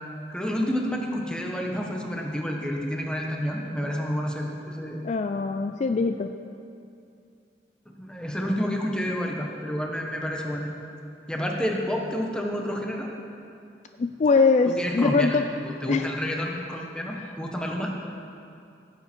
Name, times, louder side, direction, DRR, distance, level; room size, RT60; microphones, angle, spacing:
voice 1, 0.3-5.0 8.0-10.7 11.3-13.1 14.7-15.4 15.6-17.9, equal, 5° left, 0 dB, 1.1 m, -29 dB
voice 2, 5.0-6.3 14.0-15.5 15.9-16.1, left 4 dB, 40° left, 7 dB, 0.3 m, -22 dB
15.5 x 8.6 x 4.4 m, 2.5 s
head